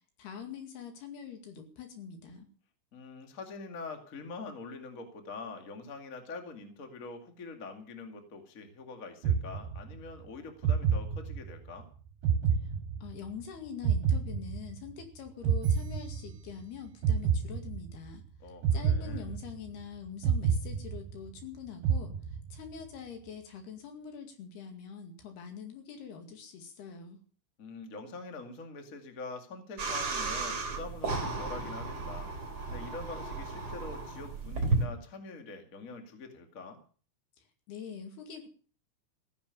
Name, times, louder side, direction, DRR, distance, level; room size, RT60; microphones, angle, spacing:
voice 1, 0.2-2.5 13.0-18.2 18.7-22.1 22.5-27.2 37.7-38.5, left 7 dB, 60° left, 5 dB, 4.0 m, -44 dB
voice 2, 2.9-11.9 18.4-19.3 27.6-36.8, left 3 dB, 85° left, 5 dB, 0.7 m, -44 dB
sound 1, 9.2-10.1 10.6-11.7 12.2-13.4 13.8-15.0 15.4-16.6 17.0-18.1 18.6-19.8 20.2-21.4 21.8-22.7, right 7 dB, 65° right, 4.2 m, -29 dB
sound 2, 29.8-34.8, right 3 dB, 30° right, 3.7 m, -34 dB
15.5 x 10.0 x 6.9 m, 0.42 s
omnidirectional pair, 5.5 m